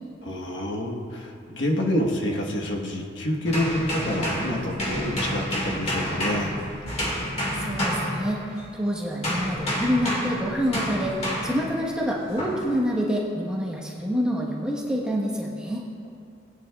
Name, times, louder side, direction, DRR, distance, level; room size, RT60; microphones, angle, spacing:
voice 1, 0.2-6.6, left 1 dB, 70° left, -1 dB, 1.3 m, -28 dB
sound 1, 3.5-8.7 9.2-11.7 12.4-12.7, equal, 30° left, 1.9 m, -29 dB
voice 2, 7.5-15.9, equal, 5° right, -4 dB, 1.2 m, -27 dB
19.0 x 9.6 x 2.4 m, 2.5 s
head